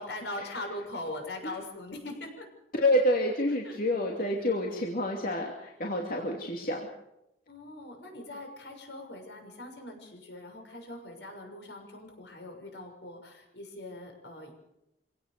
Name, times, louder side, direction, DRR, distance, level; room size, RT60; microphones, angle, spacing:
voice 1, 0.0-2.5 3.6-3.8 6.1-6.4 7.5-14.5, left 1 dB, 80° left, 4 dB, 6.5 m, -41 dB
voice 2, 2.7-6.8, left 1 dB, 55° left, 0 dB, 2.8 m, -28 dB
26.0 x 17.5 x 6.8 m, 0.88 s
head